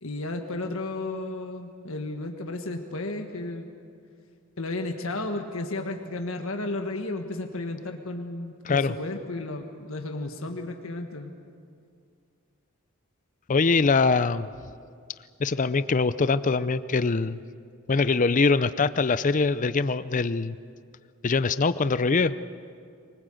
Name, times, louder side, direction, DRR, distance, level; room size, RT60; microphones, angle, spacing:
voice 1, 0.0-3.7 4.6-11.3, left 2 dB, 70° left, 4 dB, 1.6 m, -33 dB
voice 2, 13.5-14.5 15.4-17.4 17.9-20.5 21.2-22.3, left 4 dB, 35° left, 14 dB, 0.5 m, -23 dB
23.5 x 21.0 x 7.8 m, 2.3 s
head